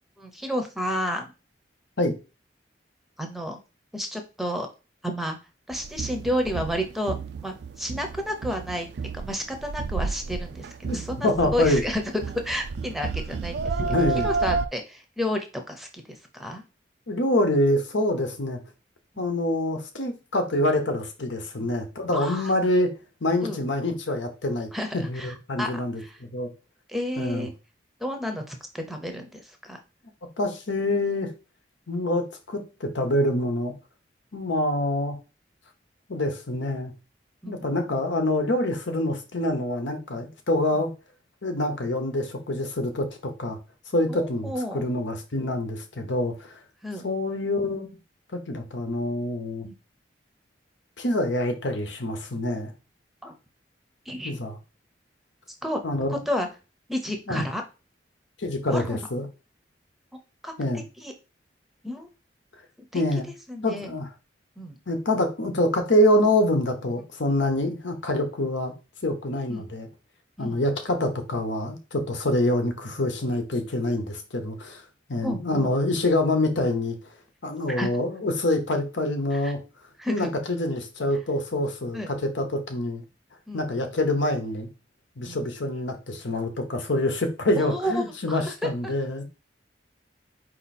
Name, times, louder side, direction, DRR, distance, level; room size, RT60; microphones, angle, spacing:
voice 1, 0.2-1.3 3.2-3.6 3.9-4.7 5.0-5.4 5.7-7.1 7.4-8.9 9.1-12.0 12.4-13.8 14.2-16.6 19.2-19.3 21.6-21.7 22.1-22.5 23.4-23.6 24.7-25.7 26.0-26.2 26.9-27.5 28.0-29.8 37.4-37.6 44.1-44.8 46.8-47.1 49.6-49.7 53.2-53.3 54.1-54.3 55.6-55.8 56.1-56.5 56.9-57.6 58.7-59.0 60.4-60.5 61.0-61.1 61.8-62.1 62.9-63.0 63.5-63.9 64.6-64.8 69.5-69.6 70.4-70.6 75.2-75.8 77.7-77.9 79.3-79.5 80.0-80.3 81.9-82.1 83.5-83.7 85.3-85.4 87.6-88.5 88.8-88.9, equal, ahead, 0.6 m, -31 dB
sound 1, 5.7-14.7, right 4 dB, 65° right, 0.4 m, -31 dB
voice 2, 11.2-11.8 13.8-14.3 17.1-18.6 19.2-23.0 23.2-24.7 24.9-26.5 27.2-27.5 30.4-31.3 31.9-33.7 34.3-35.2 36.1-36.9 37.5-40.9 41.4-43.6 43.9-46.6 47.0-47.9 48.5-49.7 51.0-52.7 54.2-54.6 55.8-56.2 57.3-57.4 58.4-59.3 60.6-60.8 62.9-63.3 63.6-64.1 64.9-68.7 69.0-69.9 70.4-74.8 75.1-77.0 77.4-79.6 80.1-83.0 83.5-84.7 85.2-89.2, left 1 dB, 90° left, 1.0 m, -26 dB
4.5 x 2.8 x 4.1 m
head